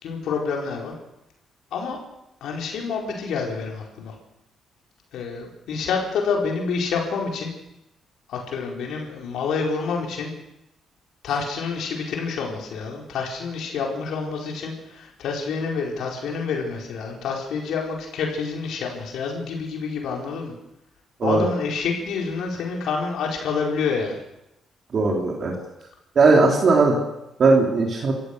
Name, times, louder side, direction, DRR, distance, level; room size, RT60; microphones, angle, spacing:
voice 1, 0.0-0.9 1.7-2.0 2.4-4.1 5.1-7.5 8.3-10.3 11.2-20.5 21.2-24.2, left 5 dB, 75° left, 0 dB, 4.7 m, -28 dB
voice 2, 24.9-25.5 26.1-27.0 27.4-28.1, right 3 dB, 50° right, 0 dB, 3.3 m, -18 dB
26.0 x 15.0 x 6.7 m, 0.87 s
cardioid pair, 90°, 0 cm